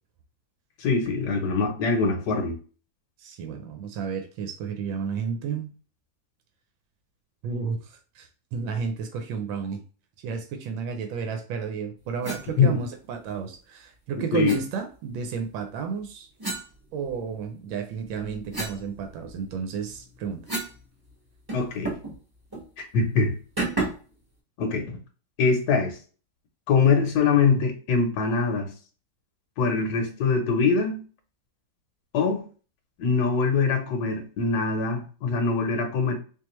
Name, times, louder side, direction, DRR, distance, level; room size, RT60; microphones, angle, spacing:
voice 1, 0.8-2.5 12.6-12.8 14.3-14.5 21.5-21.9 22.8-23.3 24.6-25.0 25.4-26.0 26.7-28.7 29.6-31.0 32.1-32.4 33.0-36.1, left 4 dB, 65° left, 1.1 m, -23 dB
voice 2, 3.2-5.7 7.4-9.8 10.2-16.3 16.9-20.5, right 6 dB, 85° right, 1.4 m, -32 dB
sound 1, 12.2-12.5 14.4-14.6 16.4-17.4 17.9-20.8 21.1-21.2 21.5-22.2 22.5-22.7 23.6-24.1, right 2 dB, 15° right, 0.8 m, -33 dB
3.7 x 2.9 x 2.9 m
omnidirectional pair, 2.1 m